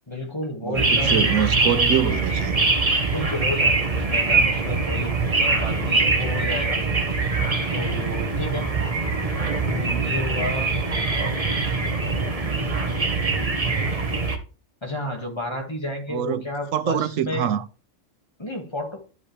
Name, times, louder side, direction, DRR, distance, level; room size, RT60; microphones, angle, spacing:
voice 1, 0.1-1.4 3.0-6.8 7.7-8.7 9.6-12.4 12.7-13.1 14.8-17.5 18.4-19.0, left 1 dB, 20° left, 2.1 m, -32 dB
voice 2, 0.6-2.6 5.8-6.0 16.1-16.4 16.7-17.6, right 9 dB, 85° right, 1.1 m, -25 dB
sound 1, 0.7-14.4, right 3 dB, 30° right, 1.2 m, -23 dB
12.0 x 5.4 x 3.4 m
omnidirectional pair, 1.3 m